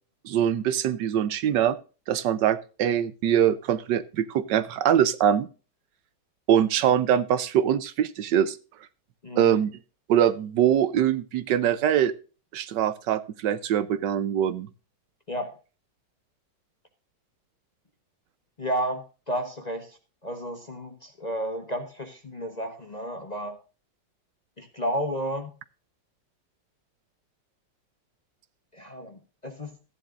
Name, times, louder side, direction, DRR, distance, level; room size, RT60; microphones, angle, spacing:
voice 1, 0.2-1.8 2.1-5.5 6.5-8.6 9.4-9.7 10.1-12.1 12.5-14.7, right 10 dB, 75° right, 15 dB, 1.3 m, -23 dB
voice 2, 9.2-9.6 15.3-15.5 18.6-23.6 24.6-25.5 28.7-29.8, equal, 30° left, 5 dB, 0.9 m, -32 dB
14.0 x 10.5 x 2.5 m, 0.33 s
omnidirectional pair, 2.0 m